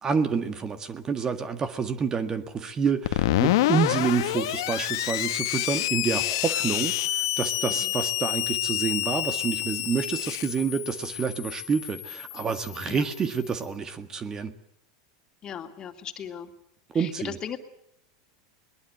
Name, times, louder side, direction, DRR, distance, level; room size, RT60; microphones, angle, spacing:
voice 1, 0.0-14.5 16.9-17.4, right 6 dB, 25° right, 10 dB, 1.8 m, -28 dB
Screech, 3.0-13.5, left 16 dB, 70° left, 1.3 m, -28 dB
voice 2, 15.4-16.5 16.9-17.6, left 8 dB, 35° left, 5 dB, 2.7 m, -37 dB
21.5 x 21.0 x 8.1 m, 0.74 s
hypercardioid pair, 110°, 2 cm